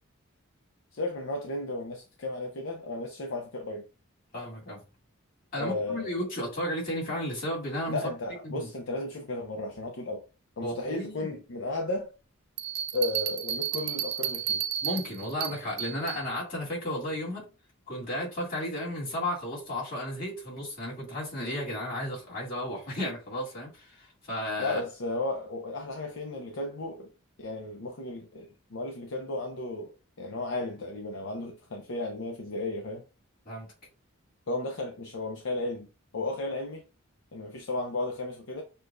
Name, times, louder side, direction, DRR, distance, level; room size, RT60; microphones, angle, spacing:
voice 1, 0.9-3.9 5.6-6.2 7.9-10.3 10.6-12.1 12.9-14.6 24.6-27.1 27.4-33.0 34.5-35.9 36.1-36.8 37.3-38.6, left 2 dB, 60° left, 0.6 m, -34 dB
voice 2, 4.3-4.8 5.5-8.0 8.4-8.7 10.6-11.3 14.8-17.5 17.9-24.8 33.5-33.7, left 1 dB, 40° left, 2.2 m, -33 dB
Bell, 12.6-16.2, right 10 dB, 45° right, 0.4 m, -32 dB
6.5 x 2.2 x 2.5 m
head